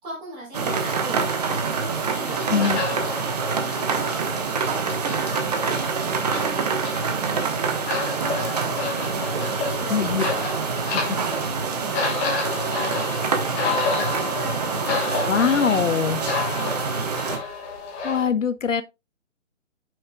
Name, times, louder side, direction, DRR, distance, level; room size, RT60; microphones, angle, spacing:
voice 1, 0.0-8.3 8.6-10.5 12.5-15.9 16.9-17.4, right 2 dB, 10° right, 3.5 m, -40 dB
sound 1, 0.5-17.4, right 5 dB, 30° right, 1.1 m, -26 dB
sound 2, 0.7-18.3, left 4 dB, 10° left, 1.2 m, -31 dB
voice 2, 9.9-10.2 10.9-11.2 15.3-16.2 18.0-18.8, left 7 dB, 70° left, 0.7 m, -22 dB
8.9 x 6.4 x 2.3 m
figure-of-eight pair, 150°, 39 cm